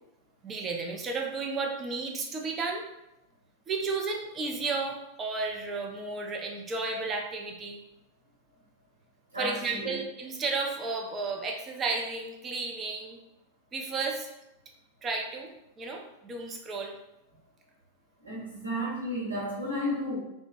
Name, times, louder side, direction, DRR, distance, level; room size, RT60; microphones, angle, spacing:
voice 1, 0.4-2.8 3.7-7.8 9.4-13.2 13.7-14.3 15.0-15.5 15.8-16.9, right 3 dB, 25° right, 1 dB, 0.4 m, -33 dB
voice 2, 9.3-10.0 18.2-20.2, equal, 80° right, -6 dB, 0.9 m, -33 dB
2.1 x 2.0 x 3.0 m, 0.89 s
figure-of-eight pair, 90°, 0 cm